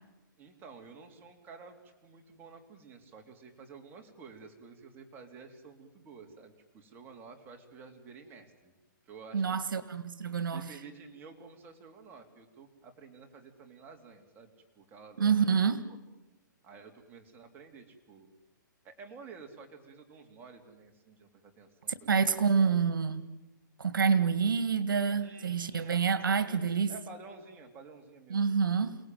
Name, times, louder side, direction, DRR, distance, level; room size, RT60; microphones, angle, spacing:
voice 1, 0.4-8.7 9.1-9.6 10.5-15.6 16.6-18.3 18.8-22.8 25.2-26.0 26.3-28.4, right 5 dB, 20° right, 3.1 m, -51 dB
voice 2, 9.3-10.7 15.2-15.8 22.1-23.2 23.8-26.9 28.3-29.0, right 6 dB, 85° right, 1.8 m, -27 dB
28.5 x 18.5 x 9.2 m
hypercardioid pair, 150°, 11 cm